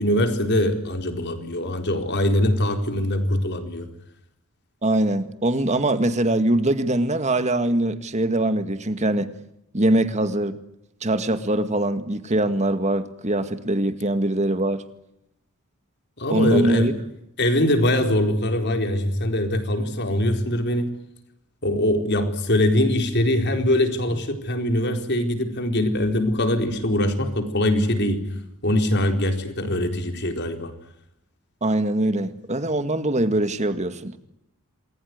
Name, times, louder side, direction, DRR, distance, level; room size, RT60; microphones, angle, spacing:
voice 1, 0.0-3.9 16.2-16.9 17.4-20.9 21.6-28.3 28.6-30.7, left 1 dB, 50° left, 4.2 m, -22 dB
voice 2, 4.8-9.3 9.7-10.6 11.0-14.8 16.3-16.9 31.6-34.2, right 1 dB, 30° right, 2.0 m, -22 dB
28.0 x 21.0 x 9.6 m
head